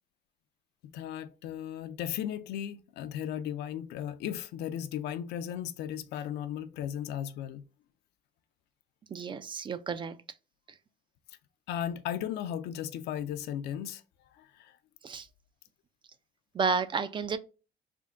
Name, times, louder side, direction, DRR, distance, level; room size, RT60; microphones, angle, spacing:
voice 1, 0.9-7.6 11.7-14.0 14.4-14.8, left 10 dB, 80° left, 0.4 m, -36 dB
voice 2, 9.1-10.2 15.0-15.3 16.5-17.4, right 5 dB, 30° right, 0.3 m, -31 dB
3.5 x 2.1 x 3.7 m
cardioid pair, 110°, 17 cm